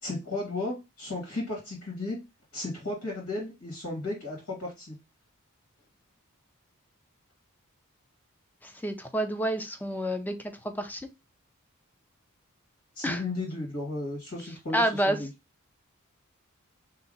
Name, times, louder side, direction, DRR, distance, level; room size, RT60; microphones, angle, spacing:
voice 1, 0.0-2.2 2.5-4.9 13.0-15.3, left 2 dB, 90° left, 2.2 m, -34 dB
voice 2, 8.6-11.0 13.0-13.2 14.7-15.2, right 1 dB, 10° left, 0.5 m, -29 dB
3.4 x 2.8 x 3.9 m
head